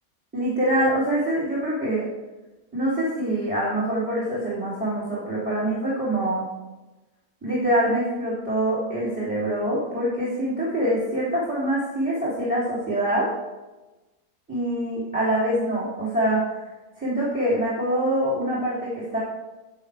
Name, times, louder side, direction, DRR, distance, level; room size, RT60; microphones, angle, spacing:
voice 1, 0.3-2.0 2.7-6.5 7.4-13.3 14.5-16.6 17.0-19.2, right 1 dB, 5° right, -8 dB, 3.4 m, -25 dB
13.0 x 8.0 x 5.1 m, 1.1 s
omnidirectional pair, 1.7 m